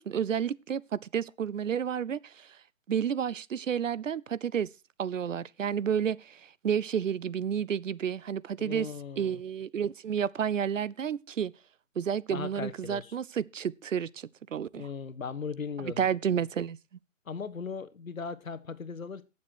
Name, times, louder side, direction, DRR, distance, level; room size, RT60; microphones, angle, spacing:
voice 1, 0.0-2.5 2.9-4.7 5.0-8.9 9.2-11.5 12.0-14.9 15.8-16.8, right 8 dB, 65° right, 0.6 m, -31 dB
voice 2, 8.6-9.4 12.3-13.2 14.7-16.1 17.3-19.2, left 5 dB, 80° left, 1.3 m, -38 dB
15.5 x 7.3 x 4.4 m
figure-of-eight pair, 155°, 41 cm